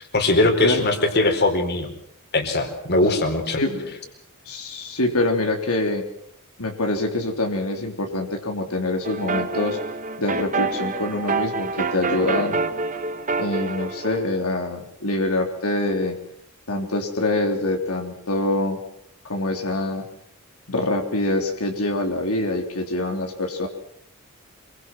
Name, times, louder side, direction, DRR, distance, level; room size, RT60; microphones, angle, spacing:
voice 1, 0.1-1.9 2.3-3.6, left 2 dB, 50° left, 6 dB, 4.2 m, -20 dB
voice 2, 3.5-3.9 4.5-6.1 6.6-9.8 10.2-12.6 13.4-16.2 16.7-18.8 19.2-20.1 20.7-23.7, left 2 dB, 85° left, 3 dB, 3.5 m, -25 dB
sound 1, 9.0-14.3, right 4 dB, 35° right, 1.5 m, -27 dB
26.5 x 23.5 x 6.2 m, 0.68 s
head